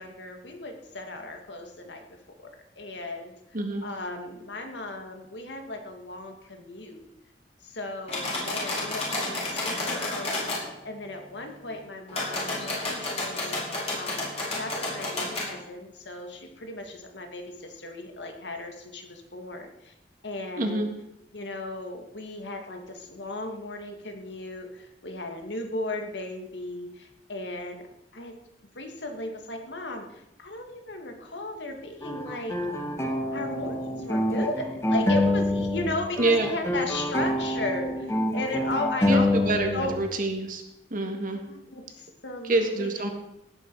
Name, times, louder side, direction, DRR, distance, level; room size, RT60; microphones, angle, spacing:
voice 1, 0.0-2.0 2.8-3.3 3.8-7.0 7.6-19.9 20.2-20.9 21.3-27.9 28.1-28.3 28.8-32.6 33.3-39.9 41.4-42.9, left 2 dB, 85° left, 4 dB, 2.2 m, -36 dB
sound 1, 8.1-10.6 12.1-15.5, left 2 dB, 40° left, 5.1 m, -31 dB
voice 2, 20.6-20.9 36.2-36.5 39.1-40.6 40.9-41.4 42.4-43.1, right 2 dB, 50° right, 4 dB, 1.9 m, -26 dB
sound 2, 32.0-35.9 36.2-40.0, left 1 dB, 15° left, 1.7 m, -26 dB
17.5 x 9.5 x 4.8 m, 0.84 s
head